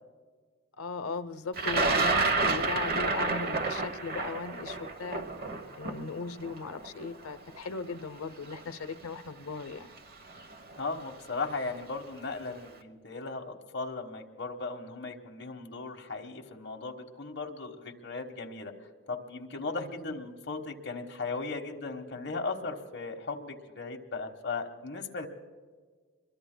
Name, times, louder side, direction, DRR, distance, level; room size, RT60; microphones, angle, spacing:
voice 1, 0.8-5.2 5.8-9.9, left 4 dB, 90° left, 11 dB, 0.8 m, -38 dB
Thunder, 1.6-7.6 8.5-8.6 9.7-10.0 10.3-10.8, right 3 dB, 45° right, 1.1 m, -29 dB
voice 2, 10.8-18.7 19.1-25.3, left 3 dB, 50° left, 1 dB, 1.3 m, -37 dB
26.0 x 23.0 x 2.2 m, 1.5 s
head